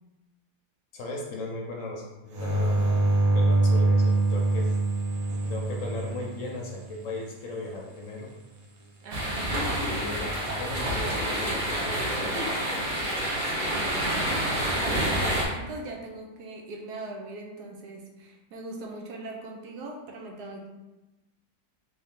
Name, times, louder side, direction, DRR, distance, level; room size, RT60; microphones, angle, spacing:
voice 1, 0.9-3.1 3.3-4.7 5.5-8.3 9.9-12.5, left 2 dB, 65° left, -1 dB, 0.9 m, -37 dB
sound 1, 2.3-7.0 10.2-10.8, right 2 dB, 65° right, 1.0 m, -24 dB
voice 2, 9.0-9.5 13.7-14.2 14.7-20.7, right 2 dB, 80° right, 1 dB, 1.2 m, -40 dB
sound 2, 9.1-15.5, right 1 dB, 45° right, 0.7 m, -28 dB
3.8 x 2.7 x 3.6 m, 1.1 s
omnidirectional pair, 1.7 m